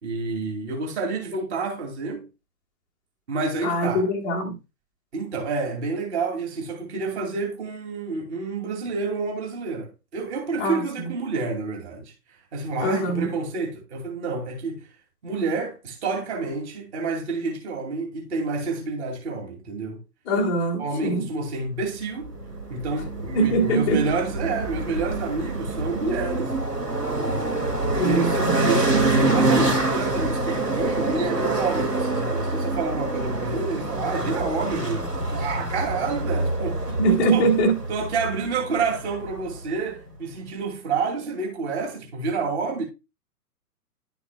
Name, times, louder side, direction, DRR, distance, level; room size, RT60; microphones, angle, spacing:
voice 1, 0.0-2.3 3.3-4.1 5.1-12.1 12.5-14.9 15.2-20.0 20.8-22.3 22.7-26.6 27.0-37.5 37.9-42.8, right 4 dB, 45° right, 2.8 m, -29 dB
voice 2, 3.6-4.6 10.6-10.8 12.8-13.3 20.3-21.2 23.3-24.0 28.0-28.6 37.0-37.7, right 2 dB, 5° left, 0.4 m, -22 dB
sound 1, 22.2-39.6, right 2 dB, 80° right, 2.5 m, -26 dB
11.0 x 7.0 x 2.3 m
figure-of-eight pair, 120°, 47 cm